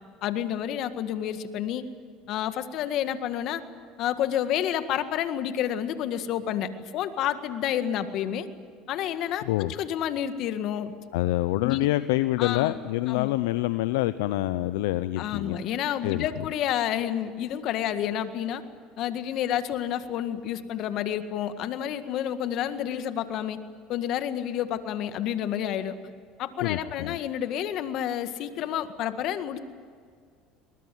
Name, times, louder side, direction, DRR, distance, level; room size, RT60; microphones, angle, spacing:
voice 1, 0.2-1.9 2.3-3.6 4.0-8.5 8.9-10.9 11.6-11.8 12.4-12.8 13.1-13.3 15.2-18.6 19.0-23.6 23.9-26.0 26.4-29.6, left 10 dB, 60° left, 10 dB, 1.8 m, -29 dB
voice 2, 11.1-15.6 16.0-16.5 26.6-27.2, left 16 dB, 80° left, 13 dB, 0.7 m, -26 dB
23.0 x 20.5 x 9.3 m, 2.1 s
supercardioid pair, 90°, 0 cm